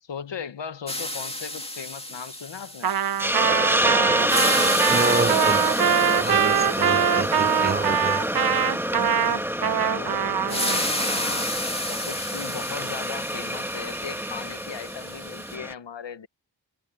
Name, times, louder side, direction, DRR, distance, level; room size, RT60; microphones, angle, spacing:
voice 1, 0.0-2.9 9.3-16.3, left 7 dB, 80° left, 1.1 m, -38 dB
sound 1, 0.9-3.8 4.1-9.0 10.5-15.6, left 1 dB, 15° left, 2.4 m, -33 dB
Trumpet, 2.8-10.8, right 8 dB, 60° right, 0.7 m, -23 dB
Hiss, 3.2-15.7, equal, 5° right, 1.5 m, -27 dB
voice 2, 4.9-5.9 6.2-8.2, right 4 dB, 25° right, 0.4 m, -28 dB
cardioid pair, 50°, 43 cm